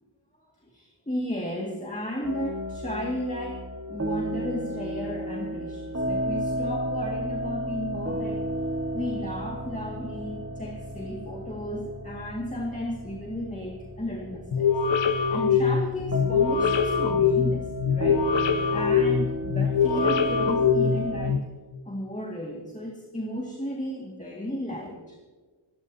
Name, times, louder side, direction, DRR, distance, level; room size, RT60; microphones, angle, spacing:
voice 1, 0.7-8.5 8.9-14.7 15.1-18.3 18.7-21.5 21.9-25.2, left 1 dB, 15° left, 0 dB, 2.0 m, -34 dB
sound 1, 2.2-21.3, equal, 30° right, 1.6 m, -33 dB
sound 2, 14.5-21.4, left 6 dB, 65° left, 1.2 m, -23 dB
29.0 x 12.5 x 2.8 m, 1.4 s
wide cardioid pair, 95°, 47 cm